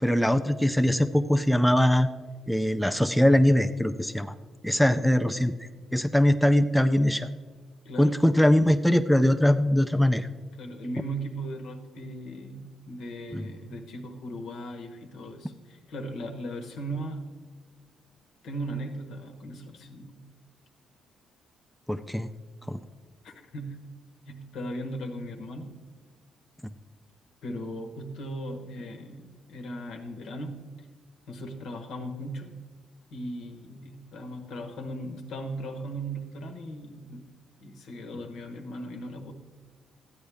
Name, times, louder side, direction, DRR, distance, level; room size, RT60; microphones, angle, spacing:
voice 1, 0.0-2.1 2.5-4.3 4.6-5.5 5.9-7.3 8.0-10.3 13.3-13.4 21.9-22.3 22.7-22.8, left 1 dB, ahead, 8 dB, 0.4 m, -22 dB
voice 2, 7.8-8.3 10.6-17.3 18.4-20.2 23.2-23.8 24.3-25.8 27.4-30.6 31.3-32.5 33.1-37.2 37.6-39.3, right 1 dB, 80° left, 5 dB, 1.2 m, -37 dB
13.0 x 8.6 x 3.5 m, 1.4 s
cardioid pair, 90°, 0 cm